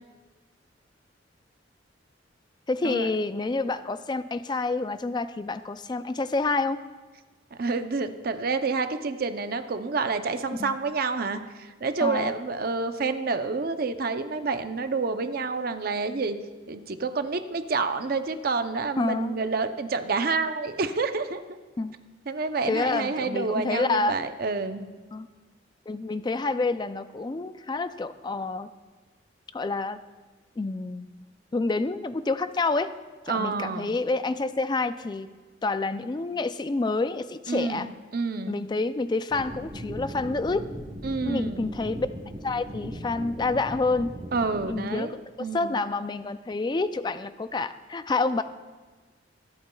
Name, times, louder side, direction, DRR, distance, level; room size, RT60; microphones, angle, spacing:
voice 1, 2.7-6.8 10.6-10.8 12.0-12.3 19.0-19.4 21.8-21.9 22.7-24.2 25.1-25.3 25.9-28.7 29.5-30.0 30.6-31.1 31.5-32.9 33.3-35.3 35.6-37.9 38.5-40.7 41.2-42.1 42.4-44.2 44.7-45.2 45.5-48.4, left 3 dB, 25° left, 12 dB, 0.3 m, -28 dB
voice 2, 7.5-16.4 16.7-21.4 22.3-24.9 33.3-34.0 37.5-38.7 41.0-41.7 44.3-45.8, right 4 dB, 50° right, 9 dB, 0.5 m, -28 dB
sound 1, 39.3-44.8, equal, 25° right, 0.9 m, -38 dB
23.0 x 8.6 x 2.3 m, 1.4 s
head